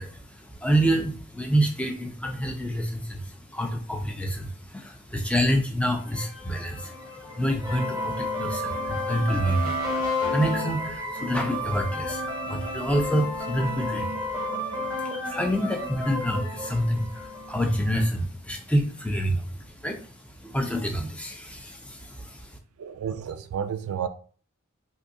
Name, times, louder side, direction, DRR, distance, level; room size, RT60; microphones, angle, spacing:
voice 1, 0.0-22.6, equal, 5° left, 0.4 m, -28 dB
sound 1, 6.1-17.8, left 1 dB, 15° right, 0.9 m, -31 dB
voice 2, 22.8-24.1, right 8 dB, 80° right, 0.3 m, -31 dB
3.7 x 2.6 x 2.6 m
head